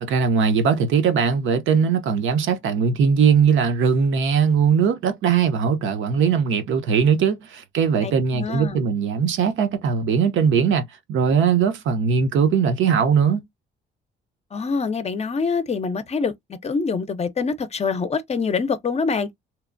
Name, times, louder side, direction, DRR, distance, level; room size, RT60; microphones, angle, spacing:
voice 1, 0.0-13.4, right 6 dB, 80° right, 0.7 m, -20 dB
voice 2, 8.0-8.8 14.5-16.3 16.6-19.3, left 5 dB, 35° left, 0.5 m, -25 dB
2.8 x 2.1 x 2.5 m
cardioid pair, 90°, 20 cm